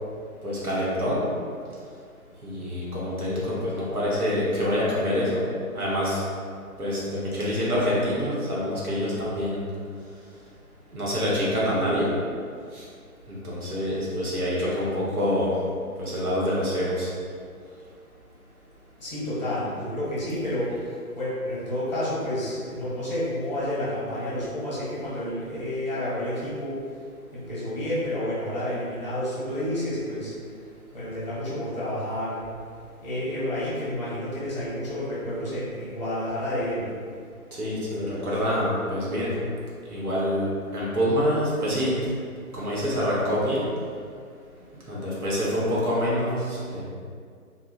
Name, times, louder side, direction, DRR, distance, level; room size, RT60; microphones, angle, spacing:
voice 1, 0.4-1.2 2.4-5.4 5.7-6.2 6.8-9.7 10.9-12.1 12.7-12.8 13.3-15.5 16.0-17.1 37.6-39.3 39.9-40.5 40.7-41.9 42.5-43.6 44.9-46.8, equal, 75° right, -7 dB, 0.9 m, -26 dB
voice 2, 19.0-26.8 27.3-30.3 30.9-32.5 33.0-36.9, left 1 dB, 30° left, -9 dB, 0.8 m, -30 dB
2.6 x 2.1 x 2.5 m, 2.2 s
figure-of-eight pair, 140°, 45 cm